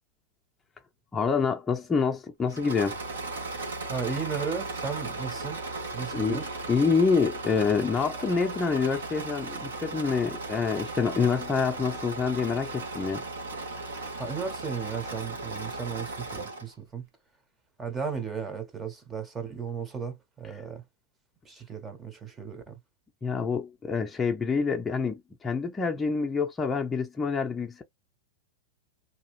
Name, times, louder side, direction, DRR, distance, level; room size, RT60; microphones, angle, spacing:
voice 1, 1.1-3.0 6.1-6.4 6.7-13.2 23.2-27.8, left 5 dB, 15° left, 0.5 m, -27 dB
Engine / Mechanisms, 2.5-16.7, right 3 dB, 85° right, 1.3 m, -36 dB
voice 2, 3.9-5.6 5.9-6.5 13.8-17.0 17.8-20.8 21.4-22.8, right 6 dB, 20° right, 0.8 m, -35 dB
2.8 x 2.3 x 3.1 m
hypercardioid pair, 120°, 0 cm